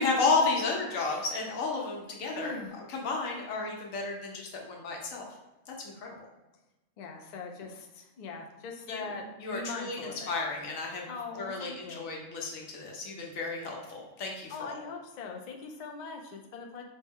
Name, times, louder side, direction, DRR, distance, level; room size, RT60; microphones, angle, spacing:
voice 1, 0.0-2.6 2.9-5.3 5.7-6.2 8.9-9.0 9.4-10.0 10.3-11.1 11.4-14.7, left 3 dB, 90° left, -1 dB, 1.2 m, -32 dB
voice 2, 1.0-1.3 2.3-2.8 7.0-9.3 9.5-10.3 11.1-12.1 14.5-16.8, left 4 dB, 65° left, 2 dB, 0.4 m, -41 dB
4.4 x 2.1 x 3.4 m, 1.0 s
omnidirectional pair, 1.4 m